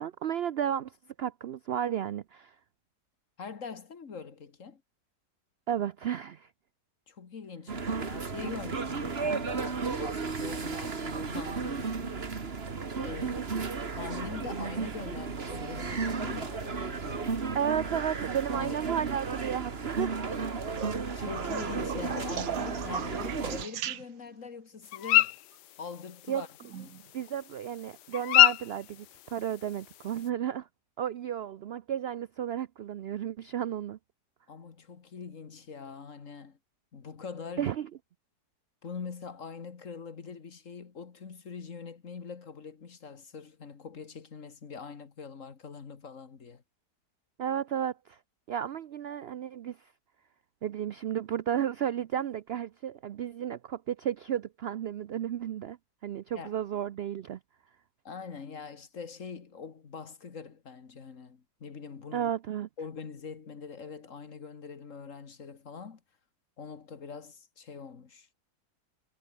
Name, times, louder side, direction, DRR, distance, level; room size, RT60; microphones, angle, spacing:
voice 1, 0.0-2.5 5.7-6.5 13.2-13.5 17.5-20.3 26.3-26.4 27.1-30.7 31.0-34.0 37.6-37.9 47.4-48.2 48.5-49.8 50.6-55.8 56.0-57.4 62.1-62.7, right 9 dB, 85° right, 0.5 m, -33 dB
voice 2, 3.4-4.8 7.1-12.2 13.0-13.4 13.9-17.4 18.6-18.8 21.2-25.4 25.8-26.5 26.8-27.0 34.5-36.6 36.9-37.7 38.8-46.6 56.3-56.5 58.0-62.3 62.8-66.0 66.6-68.3, left 5 dB, 50° left, 2.0 m, -43 dB
sound 1, 7.7-23.6, right 4 dB, 40° right, 1.9 m, -34 dB
sound 2, 20.8-24.4 26.6-27.1 28.7-28.8, right 11 dB, 60° right, 1.2 m, -39 dB
sound 3, 24.9-30.3, left 14 dB, 90° left, 1.3 m, -26 dB
omnidirectional pair, 1.7 m